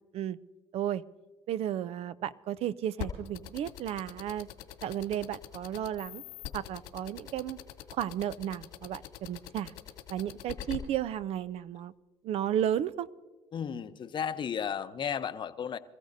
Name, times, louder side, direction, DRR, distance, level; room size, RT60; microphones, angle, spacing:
voice 1, 1.5-4.5 4.8-6.2 6.5-7.6 7.9-9.7 10.1-11.9 12.2-13.1, right 10 dB, 60° right, 16 dB, 0.5 m, -33 dB
sound 1, 3.0-10.8, left 12 dB, 90° left, 2.5 m, -41 dB
voice 2, 13.5-15.8, left 8 dB, 40° left, 11 dB, 0.8 m, -34 dB
27.0 x 14.5 x 2.7 m, 1.3 s
supercardioid pair, 85°, 12 cm